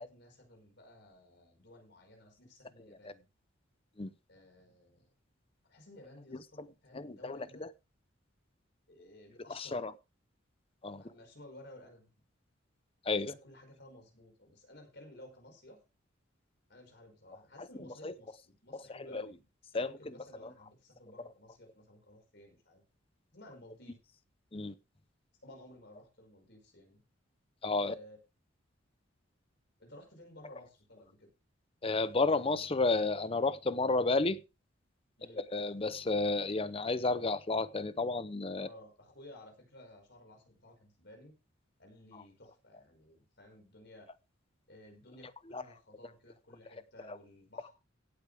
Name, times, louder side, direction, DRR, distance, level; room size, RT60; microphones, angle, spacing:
voice 1, 0.0-3.3 4.3-5.1 5.6-7.7 8.9-9.8 11.0-12.1 13.2-15.8 16.7-19.4 19.7-22.8 23.3-24.0 25.4-27.0 27.8-28.2 29.8-31.3 35.2-35.4 38.6-41.3 41.8-44.1 44.7-47.7, left 1 dB, 55° left, 5.2 m, -55 dB
voice 2, 6.3-6.7 6.9-7.7 9.5-9.9 10.8-11.0 13.1-13.3 17.6-18.1 18.7-19.4 19.7-20.5 21.2-21.3 24.5-24.7 27.6-27.9 31.8-34.4 35.3-38.7 42.1-42.2 45.4-45.6 47.0-47.2, left 3 dB, 30° left, 0.6 m, -32 dB
16.5 x 8.3 x 3.5 m
head